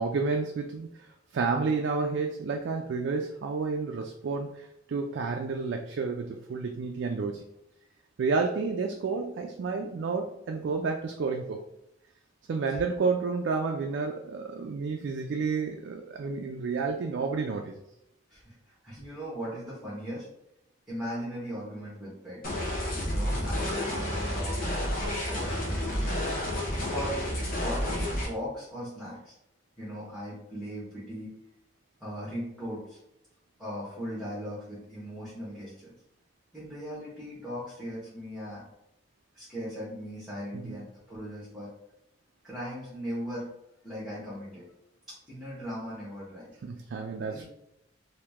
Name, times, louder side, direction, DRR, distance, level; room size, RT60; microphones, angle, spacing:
voice 1, 0.0-7.4 8.2-11.7 12.5-17.8 40.5-40.8 46.6-47.4, right 4 dB, 65° right, 3 dB, 0.3 m, -30 dB
voice 2, 18.3-20.3 20.9-22.6 23.0-26.2 26.8-27.2 27.5-29.3 29.8-31.4 32.0-33.0 33.6-35.9 36.5-38.6 39.3-41.7 42.4-43.5 43.8-44.7 45.1-46.5 47.3-47.4, equal, 5° right, -8 dB, 1.1 m, -38 dB
sound 1, 22.4-28.2, equal, 50° left, 1.0 m, -30 dB
2.9 x 2.7 x 3.4 m, 0.81 s
head